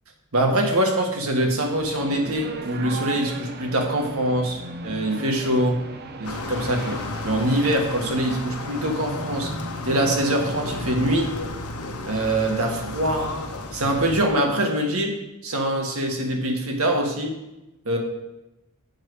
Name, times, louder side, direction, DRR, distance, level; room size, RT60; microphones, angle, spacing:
voice 1, 0.3-4.6 4.8-5.8 6.2-9.5 9.8-11.3 12.0-13.3 13.7-15.1 15.4-17.3 17.8-18.0, right 1 dB, 75° right, 2 dB, 1.5 m, -23 dB
sound 1, 1.7-11.3, right 2 dB, 50° right, 0.7 m, -37 dB
sound 2, 6.2-14.3, left 2 dB, 85° left, 0.9 m, -33 dB
7.6 x 4.7 x 6.1 m, 0.96 s
head